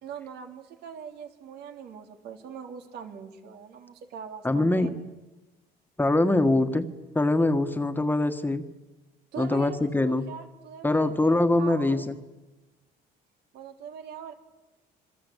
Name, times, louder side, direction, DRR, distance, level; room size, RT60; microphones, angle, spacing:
voice 1, 0.0-4.9 9.3-12.1 13.5-14.3, right 7 dB, 75° right, 5 dB, 3.5 m, -42 dB
voice 2, 4.4-4.9 6.0-6.9 7.2-8.7 9.4-10.3 10.8-12.2, left 2 dB, 10° left, 8 dB, 1.7 m, -23 dB
27.0 x 23.0 x 8.3 m, 1.1 s
cardioid pair, 110°, 17 cm